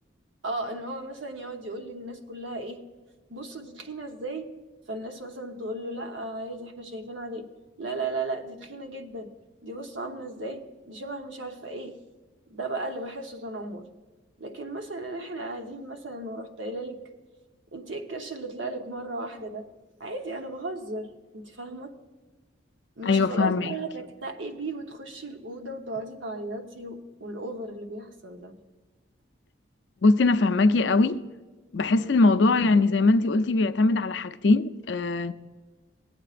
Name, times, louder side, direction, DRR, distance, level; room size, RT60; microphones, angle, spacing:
voice 1, 0.4-2.8 3.3-4.5 4.9-7.5 7.8-9.4 9.6-12.0 12.5-13.9 14.4-17.0 17.7-19.7 20.0-22.0 23.0-28.6, right 2 dB, 85° right, 1.0 m, -36 dB
voice 2, 23.1-23.7 30.0-31.2 31.7-35.3, left 3 dB, 70° left, 0.5 m, -21 dB
18.5 x 8.7 x 2.5 m
head